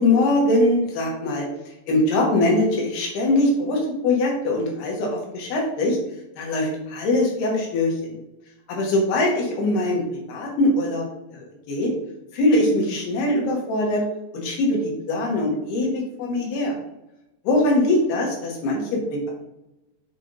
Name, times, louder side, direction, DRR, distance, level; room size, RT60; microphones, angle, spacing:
voice 1, 0.0-1.5 1.9-6.0 6.4-8.2 8.7-11.1 11.3-11.9 12.3-14.0 14.3-16.7 17.5-19.3, left 1 dB, 75° left, -1 dB, 3.4 m, -22 dB
7.4 x 3.5 x 4.0 m, 0.90 s
omnidirectional pair, 4.7 m